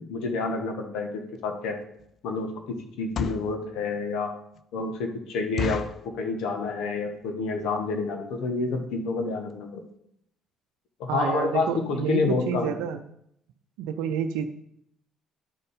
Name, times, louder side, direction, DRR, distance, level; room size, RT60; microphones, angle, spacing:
voice 1, 0.0-1.8 2.2-4.3 4.7-5.8 6.2-9.8 11.0-12.7, left 3 dB, 75° left, 4 dB, 1.4 m, -28 dB
sound 1, 1.3-1.5 2.0-2.2 2.9-3.6 4.1-4.2 4.5-4.6 5.0-5.1 5.6-6.1 6.7-7.0 7.2-7.3 7.5-7.8 8.4-8.5 8.7-8.8 9.2-9.3 9.5-9.6, left 7 dB, 55° left, 0.4 m, -32 dB
voice 2, 11.1-13.0 13.8-14.5, right 7 dB, 80° right, 8 dB, 0.5 m, -29 dB
11.5 x 4.3 x 5.0 m, 0.73 s
hypercardioid pair, 60°, 0 cm